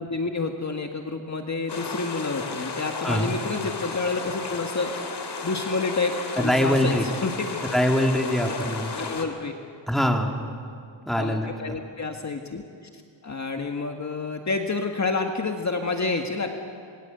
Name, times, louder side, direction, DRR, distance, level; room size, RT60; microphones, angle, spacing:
voice 1, 0.0-7.5 8.5-9.5 11.2-12.6 13.2-16.5, left 3 dB, 35° left, 4 dB, 1.8 m, -29 dB
sound 1, 1.7-9.2, left 4 dB, 55° left, 3.2 m, -34 dB
voice 2, 6.4-7.1 7.7-8.9 9.9-10.5 11.0-11.8, equal, ahead, 3 dB, 2.7 m, -23 dB
26.0 x 22.0 x 8.1 m, 2.3 s
cardioid pair, 100°, 47 cm